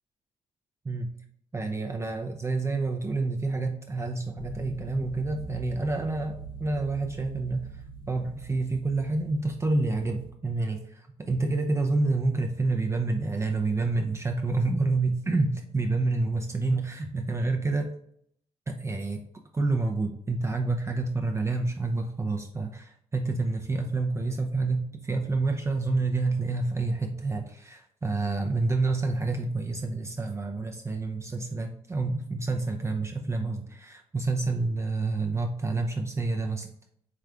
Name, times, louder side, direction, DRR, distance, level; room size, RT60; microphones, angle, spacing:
voice 1, 1.5-17.9 18.7-19.2 19.5-36.7, right 3 dB, 20° right, 3 dB, 0.5 m, -28 dB
sound 1, 4.4-10.3, right 3 dB, 40° left, 0.5 m, -42 dB
4.8 x 3.2 x 2.4 m, 0.68 s
cardioid pair, 70°, 13 cm